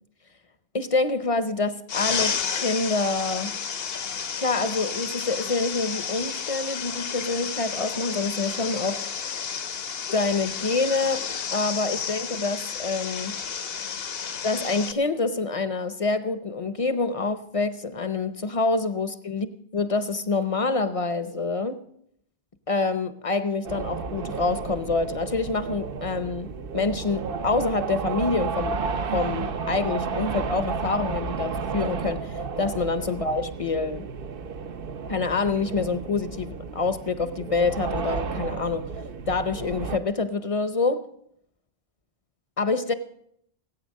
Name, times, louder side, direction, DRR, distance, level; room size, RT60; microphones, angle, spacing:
voice 1, 0.7-3.5 4.4-9.0 10.1-11.2 11.5-13.4 14.4-19.5 19.7-21.8 22.7-28.8 29.1-34.1 35.1-38.9 39.3-41.0 42.6-42.9, left 3 dB, 35° left, 12 dB, 0.7 m, -26 dB
sound 1, 1.9-14.9, left 6 dB, 65° left, 1.0 m, -31 dB
sound 2, 23.6-40.0, right 5 dB, 60° right, 0.9 m, -32 dB
17.5 x 8.8 x 6.4 m, 0.72 s
omnidirectional pair, 1.1 m